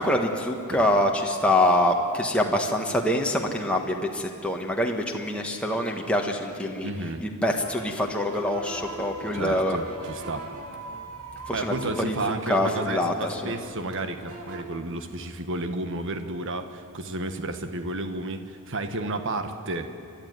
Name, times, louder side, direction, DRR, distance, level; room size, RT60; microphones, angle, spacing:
voice 1, 0.0-6.9 7.2-9.8 11.5-11.8 12.1-13.5, left 1 dB, 5° left, 0 dB, 1.4 m, -25 dB
voice 2, 6.8-7.2 9.3-10.5 11.5-19.9, right 2 dB, 60° right, 8 dB, 1.5 m, -32 dB
sound 1, 7.5-14.6, right 1 dB, 90° right, 2.6 m, -41 dB
30.0 x 12.5 x 9.5 m, 2.4 s
head